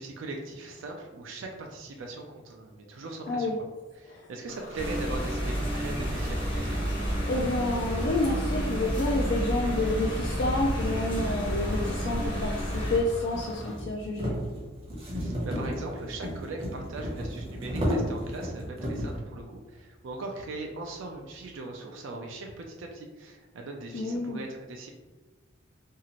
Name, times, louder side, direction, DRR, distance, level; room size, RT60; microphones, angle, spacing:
voice 1, 0.0-3.5 4.0-6.8 15.1-24.9, right 2 dB, 75° right, 1 dB, 0.4 m, -40 dB
Bus / Engine, 4.5-13.8, equal, 85° left, 0.6 m, -45 dB
sound 1, 4.8-13.0, equal, 25° left, 0.7 m, -30 dB
voice 2, 7.3-14.4 23.9-24.4, left 2 dB, 60° left, -2 dB, 0.3 m, -29 dB
sound 2, 12.0-19.2, equal, 30° right, 0.6 m, -34 dB
2.7 x 2.4 x 2.9 m, 1.2 s
head